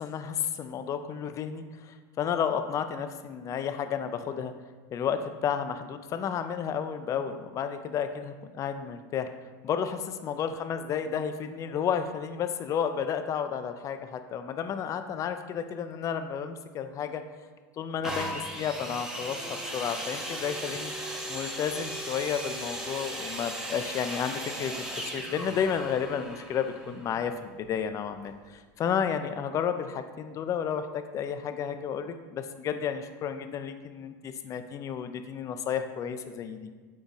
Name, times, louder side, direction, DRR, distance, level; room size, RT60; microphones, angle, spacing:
voice 1, 0.0-4.5 4.9-9.3 9.6-17.2 17.8-20.9 21.3-36.7, left 7 dB, 30° left, 9 dB, 0.3 m, -32 dB
sound 1, 18.0-27.7 28.4-28.5, right 1 dB, 5° right, 0.6 m, -37 dB
5.4 x 2.3 x 3.9 m, 1.5 s
supercardioid pair, 110°, 11 cm